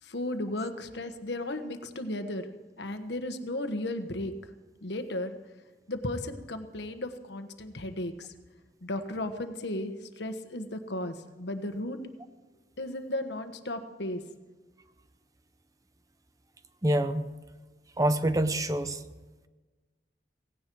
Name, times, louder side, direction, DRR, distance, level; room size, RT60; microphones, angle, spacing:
voice 1, 0.0-2.5 2.8-4.5 4.8-5.4 5.9-8.3 8.8-12.0 12.8-14.2, left 1 dB, 75° left, 8 dB, 1.4 m, -35 dB
voice 2, 16.8-17.3 18.0-19.0, right 1 dB, 20° right, 10 dB, 0.7 m, -26 dB
17.5 x 17.0 x 4.7 m, 1.3 s
head